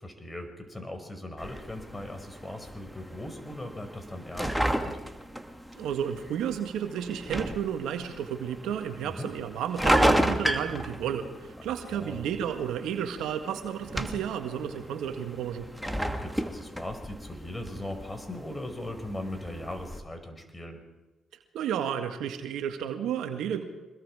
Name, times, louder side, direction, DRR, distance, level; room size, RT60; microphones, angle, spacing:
voice 1, 0.0-5.0 9.0-9.3 11.6-12.3 15.9-20.8, left 1 dB, 20° left, 6 dB, 5.6 m, -39 dB
sound 1, 1.4-20.0, equal, ahead, 2.5 m, -33 dB
voice 2, 5.8-15.7 21.5-23.7, right 9 dB, 75° right, 7 dB, 1.7 m, -32 dB
25.0 x 21.0 x 4.9 m, 1.1 s
hypercardioid pair, 45°, 0 cm